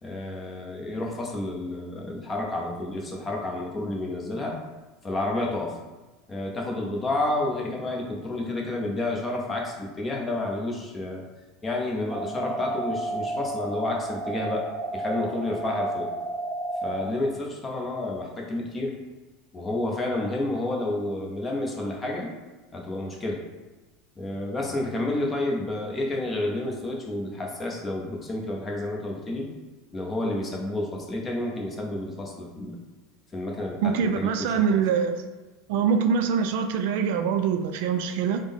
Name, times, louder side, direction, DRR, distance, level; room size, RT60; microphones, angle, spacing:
voice 1, 0.0-4.6 5.0-5.8 6.3-11.3 11.6-14.7 14.9-16.1 16.8-19.0 19.5-22.3 22.7-23.4 24.2-29.5 29.9-32.8 33.3-34.8, left 2 dB, 20° left, 0 dB, 0.6 m, -30 dB
sound 1, 12.1-17.1, right 2 dB, 25° right, 0.5 m, -32 dB
voice 2, 33.8-35.2 35.7-38.4, right 6 dB, 75° right, 6 dB, 0.3 m, -24 dB
3.6 x 2.0 x 3.5 m, 1.2 s
supercardioid pair, 140°, 0 cm